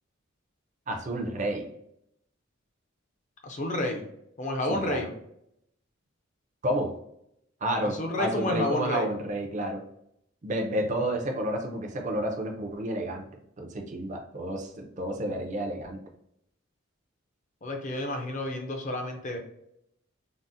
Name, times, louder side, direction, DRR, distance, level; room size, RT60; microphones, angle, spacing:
voice 1, 0.9-1.7 4.7-5.1 6.6-6.9 7.6-9.8 10.4-13.2 13.6-16.0, right 1 dB, 35° right, 3 dB, 0.4 m, -30 dB
voice 2, 3.4-4.0 4.4-5.1 7.8-9.1 17.6-19.4, left 1 dB, 35° left, 3 dB, 0.5 m, -30 dB
3.8 x 2.0 x 2.5 m, 0.77 s
head